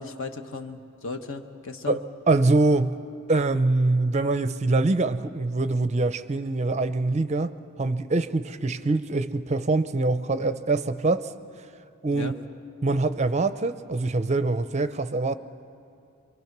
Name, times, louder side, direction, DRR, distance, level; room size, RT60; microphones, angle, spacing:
voice 1, 0.0-2.0 12.1-12.4, left 3 dB, 60° left, 6 dB, 1.2 m, -35 dB
voice 2, 1.9-3.0 3.3-11.3 12.0-12.3 12.8-15.3, right 2 dB, 30° right, 12 dB, 0.5 m, -24 dB
26.5 x 24.0 x 6.0 m, 2.5 s
head